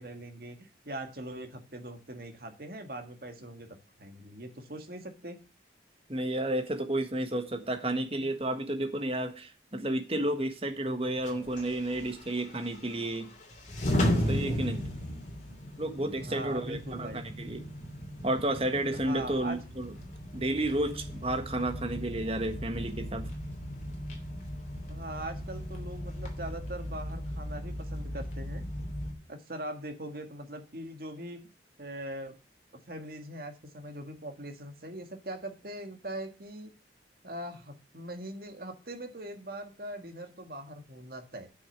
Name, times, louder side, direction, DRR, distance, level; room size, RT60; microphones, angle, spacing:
voice 1, 0.0-5.4 16.2-17.2 18.9-19.6 24.9-28.6 29.3-31.4 31.8-32.4 32.9-36.7 37.2-41.5, right 1 dB, 55° right, 1.8 m, -41 dB
voice 2, 6.1-13.3 14.3-14.9 15.8-17.6 18.2-19.9 20.3-23.3, right 1 dB, 30° right, 1.5 m, -31 dB
sound 1, 11.2-29.1, equal, 40° left, 2.8 m, -36 dB
8.0 x 6.5 x 7.1 m
head